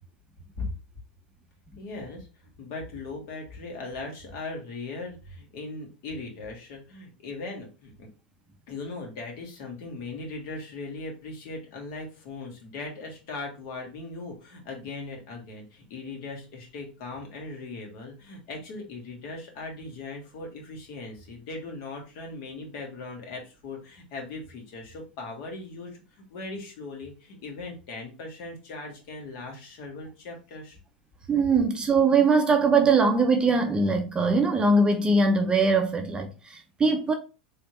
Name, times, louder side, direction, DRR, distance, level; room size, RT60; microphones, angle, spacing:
voice 1, 1.8-8.1 8.7-30.8, left 3 dB, 55° left, 1.7 m, -39 dB
voice 2, 31.3-37.2, right 3 dB, 20° right, 0.6 m, -22 dB
3.5 x 3.4 x 3.0 m
hypercardioid pair, 95°, 5 cm